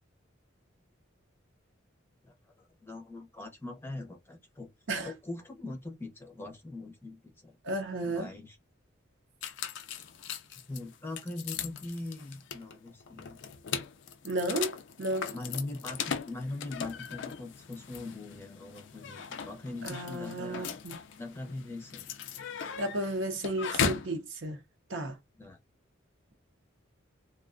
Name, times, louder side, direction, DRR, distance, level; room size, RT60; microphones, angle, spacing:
voice 1, 2.2-4.7 5.0-7.6 8.1-8.6 10.5-13.4 15.3-20.7 21.2-22.1 25.4-25.6, left 2 dB, 10° left, 0.6 m, -41 dB
voice 2, 7.6-8.3 14.2-15.4 19.8-21.0 22.8-24.6 24.9-25.2, right 1 dB, 65° right, 0.7 m, -33 dB
sound 1, 9.4-24.2, left 7 dB, 60° left, 0.3 m, -38 dB
2.4 x 2.2 x 2.4 m
head